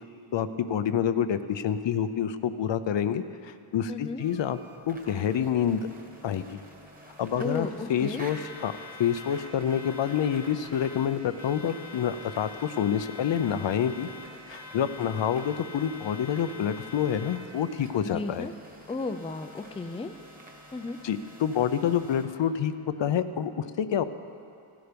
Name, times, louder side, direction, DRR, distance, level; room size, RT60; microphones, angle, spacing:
voice 1, 0.3-4.6 4.9-5.9 6.2-6.6 7.2-8.7 9.0-14.1 14.5-18.5 21.0-22.7 23.0-24.0, left 8 dB, 65° left, 12 dB, 0.6 m, -27 dB
voice 2, 3.9-4.2 7.4-8.2 18.1-18.5 18.9-20.1 20.7-21.0, left 3 dB, 15° left, 8 dB, 0.4 m, -34 dB
sound 1, 4.2-22.2, left 2 dB, 15° right, 1.6 m, -46 dB
14.5 x 12.5 x 5.2 m, 2.5 s
wide cardioid pair, 130°, 49 cm